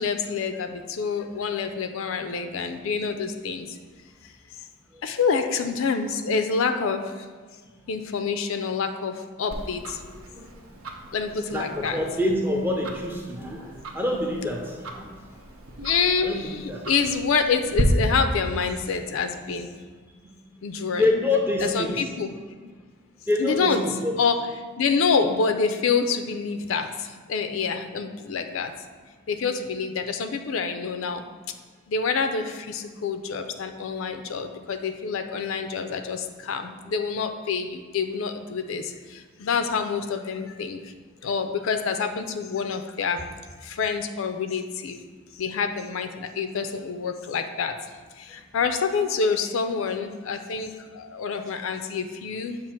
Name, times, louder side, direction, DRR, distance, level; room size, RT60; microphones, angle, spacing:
voice 1, 0.0-3.7 5.0-7.1 7.9-10.0 11.1-12.0 15.8-19.7 20.6-21.0 21.7-22.3 22.6-22.7 23.4-23.8 24.2-24.4 24.8-26.9 27.3-28.7 29.3-31.2 31.9-38.8 39.4-40.8 41.2-43.2 43.6-45.0 45.4-47.7 48.3-52.6, left 5 dB, 70° left, 7 dB, 0.4 m, -27 dB
Tick-tock, 9.5-17.8, right 1 dB, 75° right, 0.7 m, -37 dB
voice 2, 10.0-10.6 11.2-15.1 16.2-16.9 20.2-20.3 20.9-22.1 23.3-24.1, left 2 dB, 10° right, 0 dB, 0.6 m, -27 dB
7.3 x 2.5 x 5.7 m, 1.5 s
head